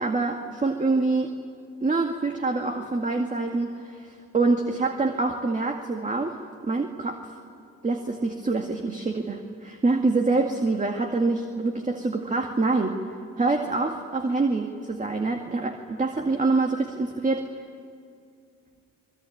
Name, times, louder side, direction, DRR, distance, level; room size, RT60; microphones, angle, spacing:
voice 1, 0.0-1.3 1.8-7.3 7.8-13.0 13.4-17.5, right 3 dB, 25° right, 4 dB, 2.1 m, -26 dB
27.0 x 22.0 x 9.4 m, 2.4 s
cardioid pair, 90°, 30 cm